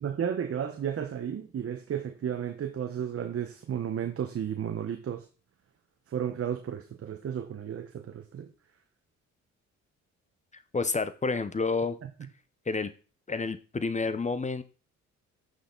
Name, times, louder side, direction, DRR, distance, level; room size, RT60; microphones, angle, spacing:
voice 1, 0.0-5.2 6.1-8.5 12.0-12.1, right 8 dB, 50° right, 1.1 m, -33 dB
voice 2, 10.7-12.0 12.7-12.9 13.3-14.6, left 4 dB, 25° left, 0.9 m, -29 dB
11.0 x 6.6 x 4.0 m
cardioid pair, 90°, 30 cm